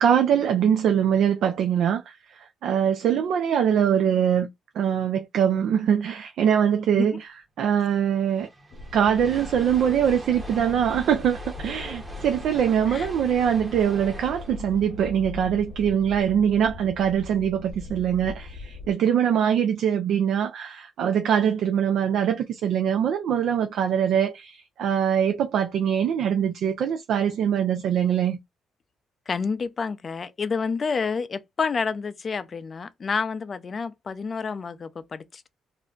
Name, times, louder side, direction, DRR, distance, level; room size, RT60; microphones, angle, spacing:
voice 1, 0.0-2.1 2.6-4.5 4.8-7.3 7.6-8.5 8.9-28.4, right 8 dB, 75° right, 0.3 m, -23 dB
sound 1, 8.1-16.3, right 2 dB, 20° right, 0.8 m, -43 dB
sound 2, 8.7-18.9, left 3 dB, 70° left, 0.7 m, -40 dB
voice 2, 29.3-35.5, left 5 dB, 40° left, 0.4 m, -29 dB
2.5 x 2.1 x 3.6 m
cardioid pair, 90°, 0 cm